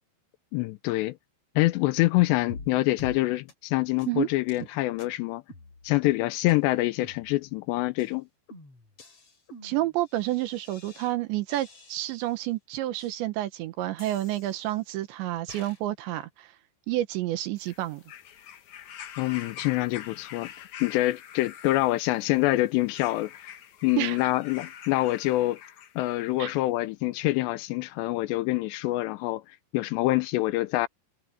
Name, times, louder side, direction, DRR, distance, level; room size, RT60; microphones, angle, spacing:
voice 1, 0.5-1.2 1.6-5.4 5.8-8.3 19.2-23.5 23.8-25.6 26.0-30.9, left 18 dB, 85° left, 2.7 m, -26 dB
sound 1, 2.5-2.7 3.0-3.2 3.5-3.6 4.0-4.1 4.5-4.6 5.0-5.1 5.5-6.1 6.5-6.6 7.0-7.6 8.0-8.1 8.5-11.1 11.5-12.4 13.0-13.1 14.0-14.9 15.5-15.8, left 2 dB, 35° left, 5.2 m, -47 dB
voice 2, 9.6-16.5 16.9-18.0 24.0-24.2 26.4-26.5, right 15 dB, 80° right, 3.5 m, -29 dB
sound 2, 17.6-26.2 27.1-27.2, left 9 dB, 65° left, 1.9 m, -45 dB
omnidirectional pair, 5.2 m